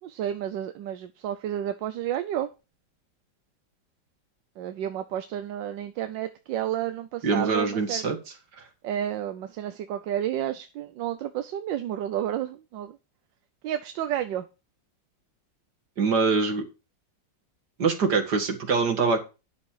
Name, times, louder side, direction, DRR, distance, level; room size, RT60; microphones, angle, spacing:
voice 1, 0.0-2.5 4.6-8.0 8.8-13.0 13.6-14.5, right 11 dB, 80° right, 9 dB, 1.4 m, -31 dB
voice 2, 7.2-8.2 16.0-16.6 17.8-19.2, right 4 dB, 65° right, 5 dB, 2.6 m, -24 dB
10.5 x 6.8 x 4.8 m, 0.29 s
omnidirectional pair, 2.0 m